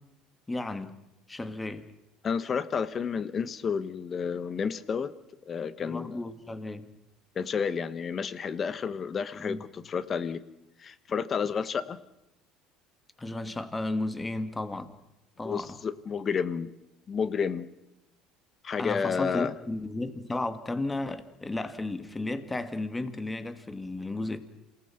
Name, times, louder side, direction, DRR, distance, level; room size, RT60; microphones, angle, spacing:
voice 1, 0.5-1.0 1.3-1.9 5.8-6.9 9.4-9.6 13.2-14.9 15.4-15.8 18.8-24.4, left 2 dB, 15° left, 2.1 m, -34 dB
voice 2, 2.2-5.1 5.5-6.2 7.3-10.4 10.8-12.0 15.4-16.7 17.1-17.7 18.6-19.5, left 6 dB, 40° left, 1.4 m, -31 dB
27.5 x 18.5 x 6.0 m
supercardioid pair, 80°, 0 cm